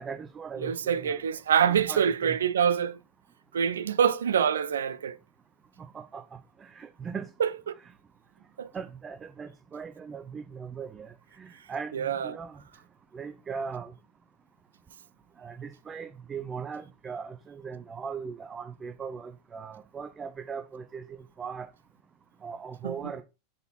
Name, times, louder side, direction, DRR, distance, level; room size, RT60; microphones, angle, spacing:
voice 1, 0.0-1.2 1.7-2.4 5.9-6.2 6.6-7.3 8.7-11.1 11.4-12.5 13.1-13.9 15.4-21.1 21.4-21.7 22.4-23.2, right 6 dB, 20° right, 0.6 m, -39 dB
voice 2, 0.6-3.0 3.5-5.2 7.4-7.7 8.6-8.7 11.9-12.4 22.8-23.1, right 8 dB, 65° right, 0.5 m, -26 dB
6.6 x 4.4 x 4.1 m
figure-of-eight pair, 90°, 0 cm